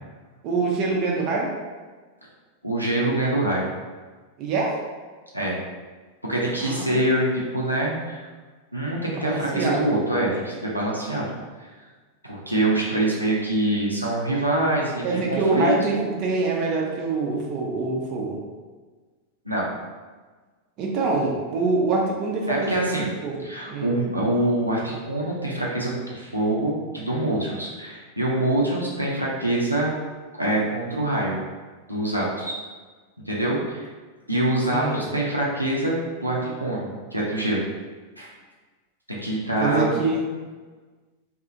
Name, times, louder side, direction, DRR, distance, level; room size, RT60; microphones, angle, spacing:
voice 1, 0.4-1.5 4.4-4.8 6.6-7.0 9.1-9.9 15.0-18.4 20.8-23.9 34.7-35.0 39.6-40.2, right 3 dB, 40° right, -2 dB, 0.5 m, -25 dB
voice 2, 2.6-3.7 5.3-5.6 6.3-8.3 8.7-11.3 11.6-11.7 12.2-15.8 19.5-19.7 22.5-23.1 23.4-29.9 30.4-31.4 31.9-32.5 33.3-33.9 34.3-37.7 38.2-38.3 39.1-39.9, right 1 dB, 90° right, -5 dB, 0.5 m, -25 dB
2.7 x 2.4 x 2.6 m, 1.4 s
figure-of-eight pair, 90°, 0 cm